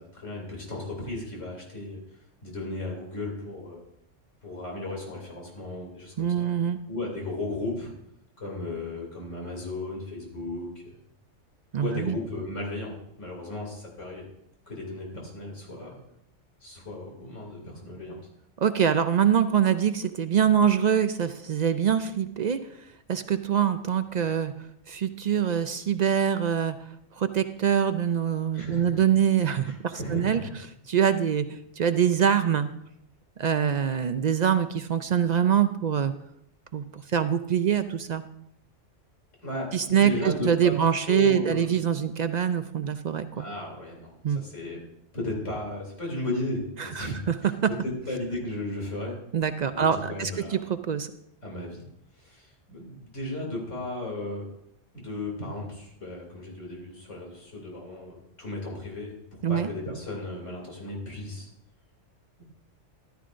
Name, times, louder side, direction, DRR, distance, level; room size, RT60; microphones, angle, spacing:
voice 1, 0.0-2.0 2.4-3.8 4.4-6.5 6.9-7.9 8.4-10.9 11.8-14.3 14.7-16.0 16.6-18.2 28.5-29.0 29.6-30.5 39.4-40.8 41.1-41.7 43.3-44.8 45.1-47.5 47.8-49.2 49.7-50.7 51.4-51.8 52.2-54.5 54.9-59.2 59.5-61.5, left 2 dB, 90° left, -1 dB, 3.2 m, -35 dB
voice 2, 6.2-6.8 11.7-12.2 18.6-22.6 23.1-24.5 24.9-26.8 27.2-30.4 30.9-32.7 33.4-36.1 36.7-38.2 39.7-43.4 44.2-44.4 46.8-47.5 49.3-51.1 59.4-59.7, right 8 dB, 60° right, 10 dB, 0.4 m, -24 dB
13.5 x 12.5 x 2.5 m, 0.75 s
omnidirectional pair, 1.2 m